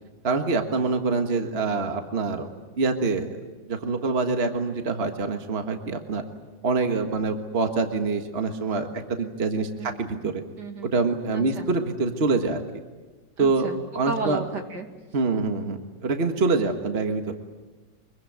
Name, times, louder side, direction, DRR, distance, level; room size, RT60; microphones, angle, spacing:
voice 1, 0.2-2.5 2.8-3.3 3.7-6.2 6.6-10.4 10.9-12.6 13.4-13.7 14.0-14.4 15.1-17.3, right 3 dB, 35° right, 5 dB, 1.7 m, -25 dB
voice 2, 10.6-10.9 11.3-11.7 13.4-13.8 14.1-14.9, right 3 dB, 70° right, 4 dB, 2.9 m, -33 dB
25.0 x 22.5 x 9.3 m, 1.2 s
omnidirectional pair, 1.9 m